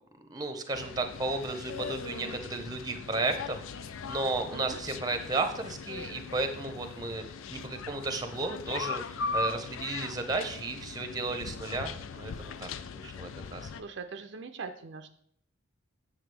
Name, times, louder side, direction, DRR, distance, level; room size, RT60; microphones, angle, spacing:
voice 1, 0.3-7.2 7.5-13.6, right 3 dB, 20° right, 7 dB, 0.7 m, -34 dB
sound 1, 0.7-13.8, left 4 dB, 70° left, 0.4 m, -39 dB
voice 2, 13.8-15.1, right 5 dB, 55° right, 7 dB, 0.5 m, -41 dB
7.9 x 7.4 x 3.3 m, 0.66 s
head